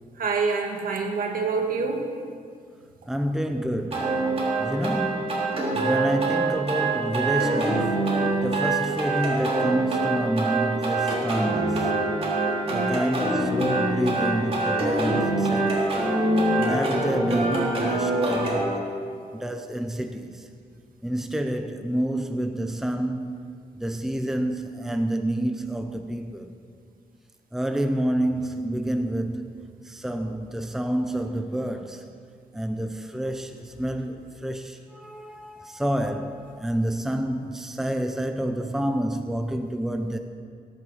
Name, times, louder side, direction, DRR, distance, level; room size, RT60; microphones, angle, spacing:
voice 1, 0.2-2.1 12.6-13.0, right 4 dB, 70° right, 1.9 m, -26 dB
voice 2, 3.1-12.0 12.7-15.8 16.6-18.9 19.3-20.5 21.0-26.6 27.5-32.1 32.5-40.2, right 1 dB, 5° right, 0.7 m, -29 dB
sound 1, 3.9-18.7, right 2 dB, 40° right, 3.5 m, -24 dB
16.5 x 9.1 x 6.4 m
wide cardioid pair, 115°, 15 cm